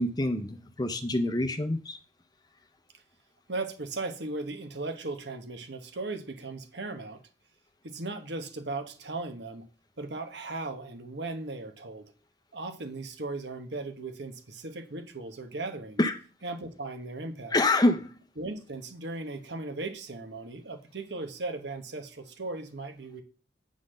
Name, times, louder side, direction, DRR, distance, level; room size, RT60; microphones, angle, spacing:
voice 1, 0.0-2.0 16.0-16.2 17.5-18.2, left 2 dB, 20° left, 0.6 m, -26 dB
voice 2, 3.5-7.2 7.8-9.7 10.0-12.1 12.5-16.0 16.4-17.6 18.4-23.2, right 3 dB, 70° right, 1.2 m, -37 dB
8.3 x 4.0 x 6.4 m
head